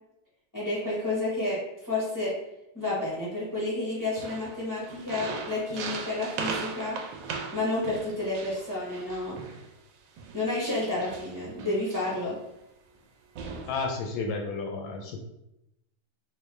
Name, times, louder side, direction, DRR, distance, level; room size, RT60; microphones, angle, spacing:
voice 1, 0.5-2.3 2.7-7.0 7.5-9.4 10.3-12.4, left 2 dB, 15° left, -7 dB, 0.8 m, -30 dB
sound 1, 4.1-9.7 10.2-12.3 13.0-13.1 13.4-13.7, right 5 dB, 75° right, 1.1 m, -38 dB
voice 2, 13.7-15.2, left 4 dB, 75° left, 2 dB, 1.3 m, -32 dB
3.7 x 2.7 x 3.3 m, 0.87 s
omnidirectional pair, 2.2 m